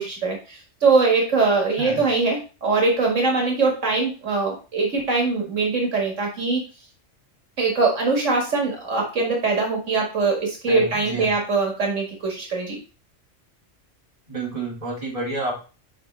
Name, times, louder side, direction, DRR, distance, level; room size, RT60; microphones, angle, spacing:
voice 1, 0.0-6.6 7.6-12.8, right 3 dB, 80° right, 0 dB, 2.1 m, -22 dB
voice 2, 10.7-11.3 14.3-15.6, right 2 dB, 30° right, -4 dB, 2.7 m, -29 dB
8.3 x 4.9 x 3.3 m, 0.34 s
omnidirectional pair, 1.3 m